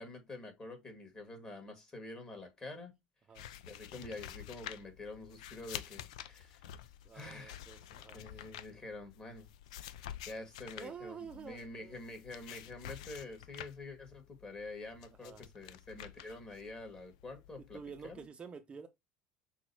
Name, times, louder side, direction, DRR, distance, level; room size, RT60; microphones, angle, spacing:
voice 1, 0.0-2.9 3.7-6.7 7.1-7.6 8.1-9.5 10.3-18.3, left 2 dB, 25° left, 1.9 m, -47 dB
sound 1, 3.3-18.3, left 11 dB, 85° left, 0.4 m, -50 dB
voice 2, 7.0-8.2 10.8-12.0 15.2-15.4 17.7-18.9, right 6 dB, 30° right, 0.5 m, -49 dB
6.0 x 2.2 x 2.8 m
supercardioid pair, 90°, 4 cm